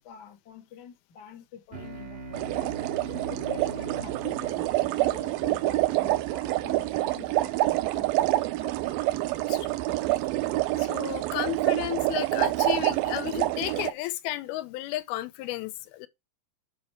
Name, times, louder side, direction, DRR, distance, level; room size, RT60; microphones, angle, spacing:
voice 1, 0.0-2.8 3.1-8.7, left 9 dB, 60° left, 1.1 m, -47 dB
sound 1, 1.7-6.6, right 1 dB, 55° right, 0.6 m, -43 dB
sound 2, 2.3-13.9, right 17 dB, 80° right, 2.3 m, -27 dB
voice 2, 9.3-9.8 10.8-16.1, left 15 dB, 90° left, 2.7 m, -33 dB
7.2 x 5.5 x 4.5 m
omnidirectional pair, 4.3 m